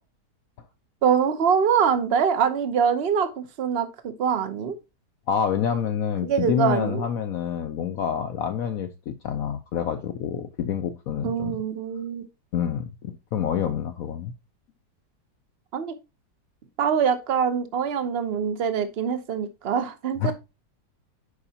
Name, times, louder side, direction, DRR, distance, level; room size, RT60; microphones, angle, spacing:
voice 1, 1.0-3.9 4.2-4.7 6.2-7.0 11.2-12.2 15.7-15.9 16.8-20.3, right 7 dB, 45° right, 0.9 m, -24 dB
voice 2, 5.3-11.5 12.5-14.3 20.2-20.3, left 8 dB, 65° left, 0.9 m, -27 dB
9.8 x 4.9 x 2.8 m
omnidirectional pair, 1.8 m